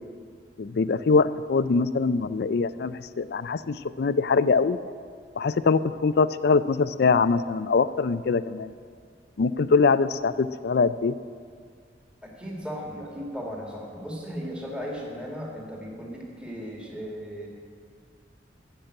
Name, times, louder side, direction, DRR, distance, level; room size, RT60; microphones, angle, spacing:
voice 1, 0.6-4.8 5.4-8.7 9.4-11.1, left 4 dB, 60° left, 14 dB, 0.4 m, -23 dB
voice 2, 12.2-17.5, equal, 5° right, -2 dB, 1.9 m, -36 dB
13.5 x 7.3 x 8.8 m, 2.1 s
head